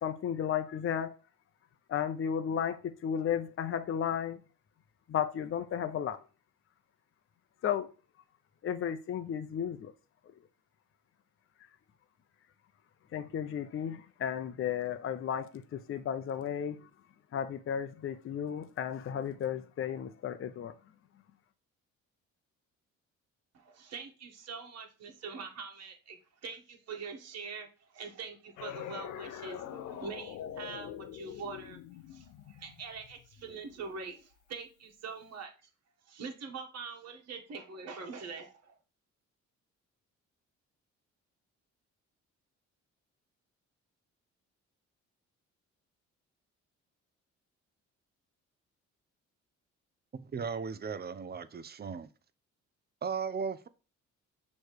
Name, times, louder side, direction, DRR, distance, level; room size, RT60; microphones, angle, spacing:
voice 1, 0.0-1.1 1.9-4.4 5.1-6.2 7.6-7.9 8.6-9.9 13.1-16.8 17.3-20.7, left 8 dB, 45° left, 0.6 m, -34 dB
voice 2, 23.5-27.7 27.9-31.8 32.1-35.5 36.1-38.7, right 5 dB, 55° right, 1.5 m, -44 dB
sound 1, 28.6-33.9, left 11 dB, 85° left, 0.6 m, -44 dB
voice 3, 50.1-52.1 53.0-53.7, right 6 dB, 35° right, 0.6 m, -36 dB
6.4 x 3.2 x 4.7 m
cardioid pair, 90°, 30 cm